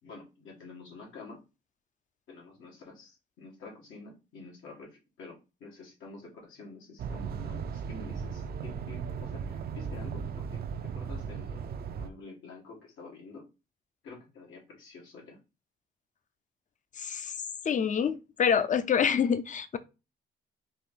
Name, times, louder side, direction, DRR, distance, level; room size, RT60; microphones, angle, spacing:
voice 1, 0.0-1.4 2.3-13.5 14.0-15.4, left 3 dB, 80° left, 1.8 m, -48 dB
sound 1, 7.0-12.1, right 6 dB, 50° right, 0.5 m, -37 dB
voice 2, 17.0-17.3 17.6-19.8, left 7 dB, 40° left, 0.6 m, -26 dB
4.3 x 2.8 x 3.7 m
cardioid pair, 90°, 20 cm